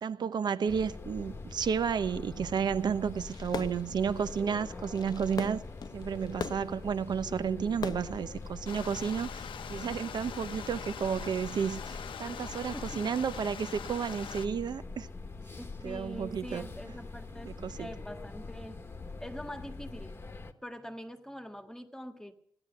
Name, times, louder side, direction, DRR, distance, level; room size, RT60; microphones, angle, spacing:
voice 1, 0.0-5.6 5.9-15.1 15.8-16.7 17.4-17.9, right 7 dB, 60° right, 0.9 m, -32 dB
sound 1, 0.6-20.5, left 3 dB, 25° left, 1.2 m, -44 dB
Fireworks, 3.2-9.2, left 6 dB, 50° left, 0.7 m, -43 dB
Stream, 8.7-14.5, left 8 dB, 80° left, 0.9 m, -43 dB
voice 2, 15.6-18.8 19.2-20.2 20.6-22.3, equal, 5° left, 1.6 m, -44 dB
16.0 x 11.0 x 6.8 m
wide cardioid pair, 130°, 9 cm